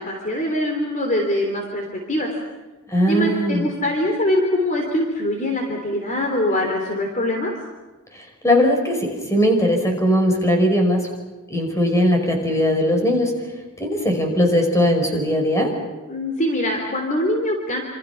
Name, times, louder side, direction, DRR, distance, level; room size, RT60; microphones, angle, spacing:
voice 1, 0.0-2.3 3.1-7.5 16.1-17.8, left 1 dB, 35° left, 2 dB, 3.4 m, -23 dB
voice 2, 2.9-3.6 8.2-11.1 11.5-13.3 13.8-15.7, equal, 15° left, 3 dB, 5.3 m, -19 dB
27.5 x 27.5 x 5.9 m, 1.2 s
head